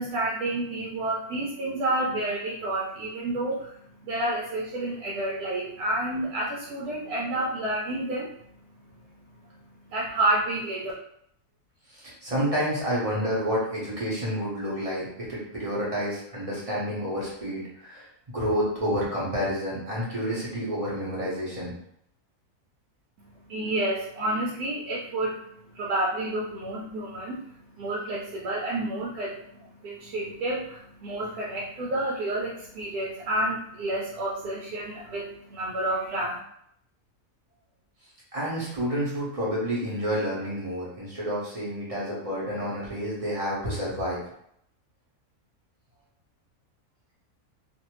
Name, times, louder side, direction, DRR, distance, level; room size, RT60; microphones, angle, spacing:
voice 1, 0.0-10.9 23.2-36.4, right 1 dB, 85° right, -3 dB, 1.1 m, -30 dB
voice 2, 11.9-21.7 38.3-44.2, equal, 30° right, -6 dB, 0.8 m, -29 dB
2.6 x 2.5 x 3.0 m, 0.70 s
omnidirectional pair, 1.6 m